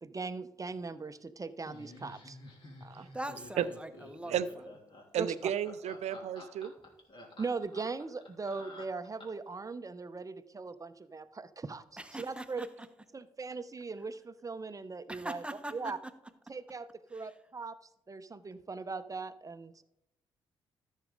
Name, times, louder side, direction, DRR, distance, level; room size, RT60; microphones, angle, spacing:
voice 1, 0.0-2.4 2.8-3.1 5.2-5.5 7.4-11.8 12.2-12.7 13.1-15.4 15.7-16.0 16.5-17.8 18.1-19.8, right 4 dB, 25° right, 12 dB, 0.8 m, -39 dB
Laughter, 1.7-9.5, left 2 dB, 40° left, 3.2 m, -51 dB
voice 2, 3.1-4.4 12.0-12.9 15.1-15.9 17.1-17.3, right 1 dB, 10° right, 9 dB, 1.2 m, -42 dB
voice 3, 5.1-6.7, right 10 dB, 60° right, 15 dB, 0.6 m, -32 dB
13.5 x 6.4 x 4.0 m, 0.82 s
hypercardioid pair, 40°, 13 cm